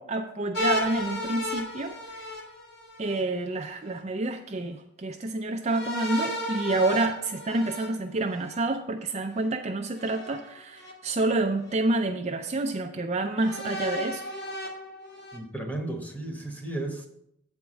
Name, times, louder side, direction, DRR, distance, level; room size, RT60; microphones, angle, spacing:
voice 1, 0.0-2.3 3.0-14.2, right 2 dB, 30° right, 4 dB, 0.4 m, -28 dB
sound 1, 0.5-3.2 5.6-8.7 10.0-10.9 11.7-11.8 13.4-15.4, left 1 dB, 50° left, 1.7 m, -34 dB
voice 2, 15.3-17.1, right 2 dB, 10° left, 3 dB, 1.1 m, -34 dB
7.9 x 4.7 x 6.2 m, 0.75 s
head